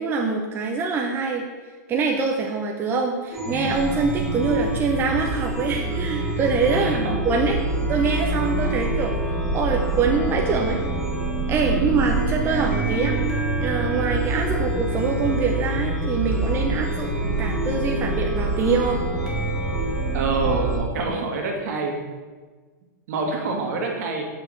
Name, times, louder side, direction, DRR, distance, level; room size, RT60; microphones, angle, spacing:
voice 1, 0.0-1.4 1.9-7.6 7.9-10.8 11.5-13.2 13.6-17.1 17.4-19.0, right 4 dB, 20° right, 1 dB, 0.7 m, -24 dB
Chime, 3.3-20.8, right 2 dB, 5° right, 1.8 m, -25 dB
voice 2, 6.7-7.2 8.6-8.7 11.6-11.9 20.1-22.0 23.1-24.2, right 3 dB, 60° right, 0 dB, 1.8 m, -27 dB
6.2 x 4.7 x 6.3 m, 1.4 s
hypercardioid pair, 135°, 10 cm